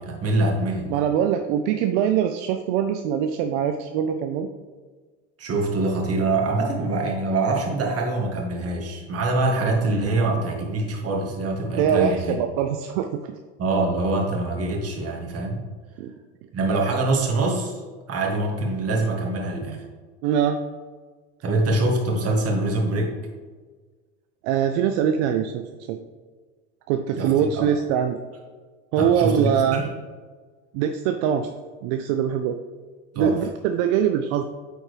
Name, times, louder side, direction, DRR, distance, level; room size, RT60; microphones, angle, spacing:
voice 1, 0.0-0.9 5.4-12.3 13.6-15.6 16.5-17.8 18.1-19.8 21.4-23.1 27.2-27.7 29.0-29.9 33.2-33.3, right 2 dB, 40° right, 0 dB, 1.9 m, -24 dB
voice 2, 0.9-4.5 11.8-13.3 16.0-16.1 20.2-20.6 24.4-25.6 25.9-26.0 26.9-28.2 28.9-29.8 30.7-31.5 31.8-32.6 33.2-34.4, right 8 dB, 70° right, 7 dB, 0.6 m, -23 dB
9.1 x 4.4 x 3.3 m, 1.4 s
hypercardioid pair, 80°, 36 cm